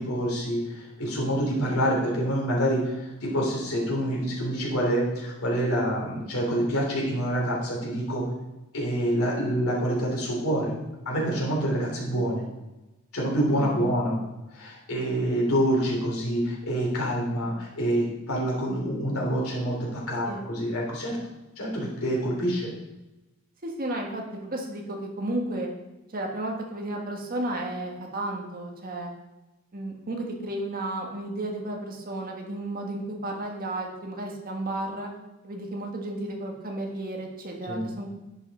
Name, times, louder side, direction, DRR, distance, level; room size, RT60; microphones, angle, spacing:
voice 1, 0.0-2.9 3.2-8.3 8.7-10.7 11.0-12.4 13.1-14.2 14.5-21.2 21.6-22.7 37.7-37.8, equal, 90° left, -3 dB, 3.2 m, -26 dB
voice 2, 13.6-14.0 20.2-20.5 23.6-25.7 26.1-29.1 29.7-35.1 35.4-38.1, right 1 dB, 40° right, 1 dB, 1.5 m, -33 dB
10.5 x 5.6 x 4.2 m, 1.0 s
head